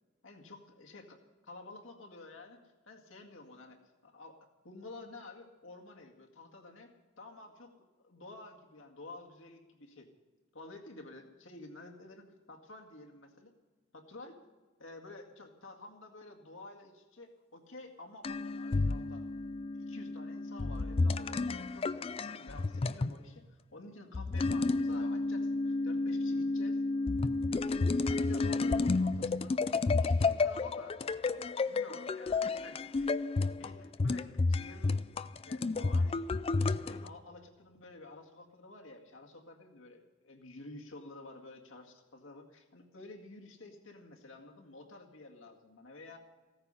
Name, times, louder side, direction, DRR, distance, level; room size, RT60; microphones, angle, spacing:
voice 1, 0.2-1.2 1.5-6.9 7.2-10.1 10.5-13.5 13.9-14.4 14.8-19.3 19.7-26.8 27.5-29.5 30.0-31.0 31.3-33.1 33.6-35.1 35.4-36.2 36.8-46.2, left 2 dB, 75° left, 2 dB, 2.1 m, -51 dB
sound 1, 18.2-23.2 24.1-37.1, left 3 dB, 30° left, 0.4 m, -31 dB
16.0 x 14.0 x 5.6 m, 1.3 s
head